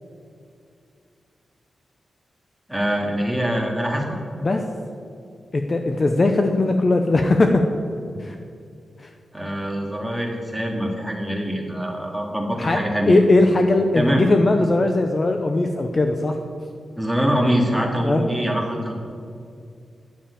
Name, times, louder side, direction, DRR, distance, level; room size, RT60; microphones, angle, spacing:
voice 1, 2.7-4.2 9.3-13.2 13.9-14.3 17.0-18.9, equal, ahead, 1 dB, 2.1 m, -24 dB
voice 2, 5.5-7.6 8.2-8.4 9.0-9.1 12.6-12.8 13.1-16.3 18.0-18.3, left 2 dB, 35° left, 5 dB, 0.7 m, -19 dB
10.5 x 7.2 x 8.6 m, 2.4 s
wide cardioid pair, 110°, 0 cm